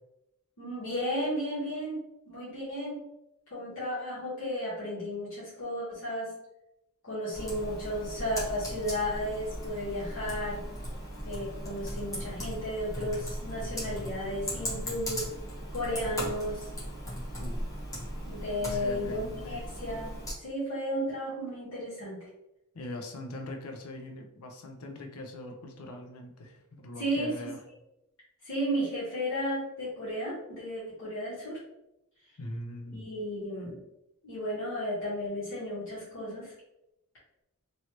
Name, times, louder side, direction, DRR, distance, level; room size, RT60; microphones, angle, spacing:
voice 1, 0.6-2.0 2.3-3.0 3.5-6.3 7.0-10.6 11.2-15.3 15.7-16.7 18.2-22.2 27.0-27.5 28.4-31.6 32.9-33.8 34.2-36.5, equal, 65° left, -10 dB, 1.5 m, -34 dB
Computer keyboard, 7.3-20.3, equal, 15° left, 1.0 m, -38 dB
voice 2, 18.7-19.7 22.7-27.6 32.4-33.0, left 1 dB, 85° left, 4 dB, 0.6 m, -42 dB
3.1 x 2.7 x 2.9 m, 0.87 s
head